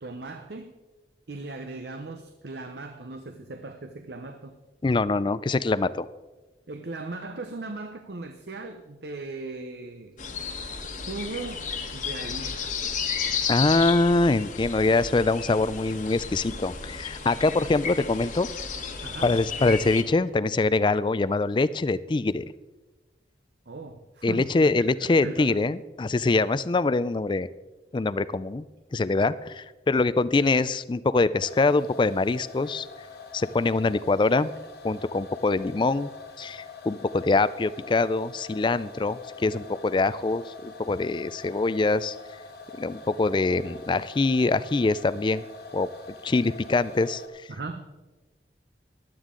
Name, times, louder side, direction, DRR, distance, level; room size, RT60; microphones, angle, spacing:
voice 1, 0.0-0.7 1.3-4.6 6.7-10.2 11.1-11.6 11.9-12.8 19.0-19.4 23.7-24.7 25.0-25.6 47.5-47.9, right 3 dB, 70° right, 6 dB, 0.8 m, -38 dB
voice 2, 4.8-6.1 13.5-18.5 19.2-22.4 24.2-27.5 27.9-28.7 28.9-32.9 33.3-34.5 34.8-36.1 36.4-42.2 42.8-45.4 45.7-45.9 46.2-47.2, left 3 dB, 25° left, 17 dB, 0.4 m, -24 dB
sound 1, 10.2-20.0, left 6 dB, 45° left, 1.3 m, -33 dB
sound 2, 31.4-47.3, left 4 dB, 65° left, 1.6 m, -44 dB
15.5 x 11.5 x 3.8 m, 1.2 s
head